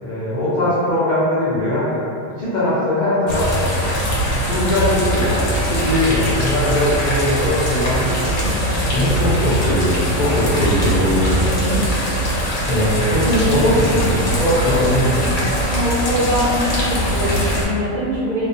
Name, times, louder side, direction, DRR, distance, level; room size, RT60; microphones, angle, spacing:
voice 1, 0.0-2.0 2.3-3.5 4.4-8.5 8.9-11.8 12.7-15.5, left 1 dB, 80° left, -12 dB, 0.4 m, -20 dB
sound 1, 3.3-17.6, equal, 65° left, 0.8 m, -21 dB
voice 2, 15.7-18.5, equal, 75° right, -12 dB, 0.4 m, -22 dB
2.3 x 2.1 x 2.5 m, 2.4 s
omnidirectional pair, 1.5 m